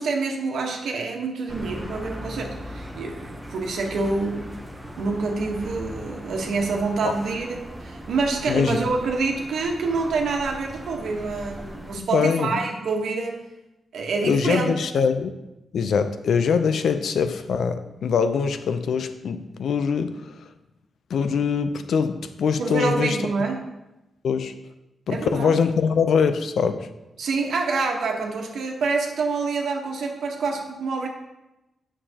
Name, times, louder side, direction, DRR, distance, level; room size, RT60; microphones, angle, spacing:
voice 1, 0.0-4.5 5.0-13.4 13.9-14.7 22.6-23.6 25.1-25.6 27.2-31.1, right 4 dB, 75° right, 2 dB, 1.2 m, -27 dB
sound 1, 1.5-12.0, equal, 5° right, 0.9 m, -39 dB
voice 2, 8.5-8.8 11.9-12.5 14.2-15.3 15.7-20.3 21.1-23.2 24.2-24.5 25.1-26.9, left 6 dB, 70° left, 10 dB, 0.5 m, -23 dB
9.1 x 6.6 x 2.9 m, 0.97 s
wide cardioid pair, 150°, 0 cm